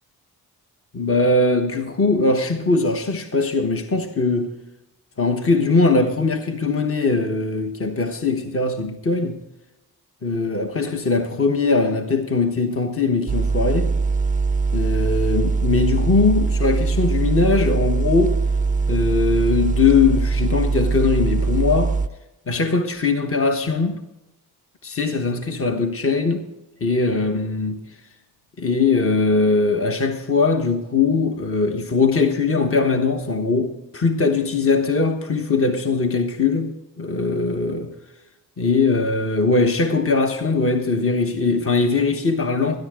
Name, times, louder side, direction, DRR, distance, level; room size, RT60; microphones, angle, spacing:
voice 1, 0.9-4.5 5.2-9.4 10.2-13.9 14.7-18.4 18.9-21.9 22.5-24.0 24.8-26.5 26.8-27.8 28.6-37.9 38.6-42.8, left 3 dB, 35° left, 1.2 m, -20 dB
sound 1, 13.3-22.1, right 4 dB, 20° right, 0.4 m, -21 dB
19.0 x 10.5 x 3.7 m
cardioid pair, 55°, 39 cm